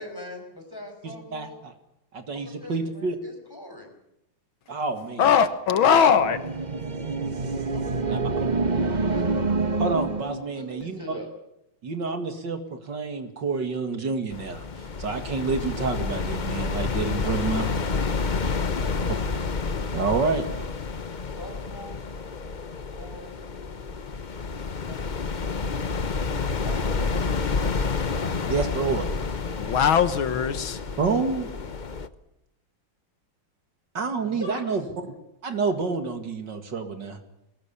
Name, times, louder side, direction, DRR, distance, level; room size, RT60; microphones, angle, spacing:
voice 1, 0.0-0.4 0.7-1.6 2.3-3.9 7.7-9.2 10.5-11.3 17.2-19.2 21.3-22.0 22.9-23.4 26.5-27.3 34.2-34.6, left 1 dB, 10° left, 3 dB, 6.0 m, -42 dB
voice 2, 2.1-3.2 4.7-5.3 6.1-6.2 8.1-8.2 9.8-11.0 11.8-17.7 19.9-20.7 28.5-29.1 31.0-31.5 33.9-34.8 35.4-37.2, right 4 dB, 60° right, 8 dB, 2.7 m, -28 dB
voice 3, 5.2-6.4 29.6-30.8, left 7 dB, 80° left, 12 dB, 2.1 m, -20 dB
sound 1, 5.8-10.5, right 3 dB, 25° right, 1.0 m, -27 dB
sound 2, 14.3-32.1, left 4 dB, 40° left, 0.6 m, -29 dB
22.0 x 20.0 x 8.6 m, 0.82 s
omnidirectional pair, 2.2 m